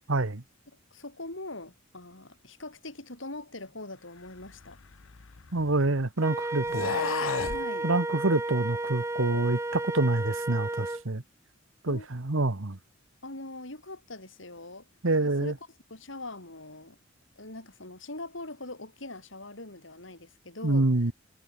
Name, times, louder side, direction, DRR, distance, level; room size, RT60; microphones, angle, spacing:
voice 1, 0.1-0.4 5.5-7.0 7.8-11.2 11.8-12.8 15.0-15.5 20.6-21.1, right 2 dB, 75° right, 1.5 m, -26 dB
voice 2, 0.9-4.8 7.5-7.9 11.9-12.1 13.2-14.9 15.2-15.5 15.9-17.0 17.4-20.9, left 2 dB, 65° left, 5.9 m, -42 dB
sound 1, 4.4-5.9 6.6-7.6, left 5 dB, 85° left, 0.9 m, -33 dB
Wind instrument woodwind instrument, 6.2-11.0, right 2 dB, 15° right, 0.6 m, -32 dB
head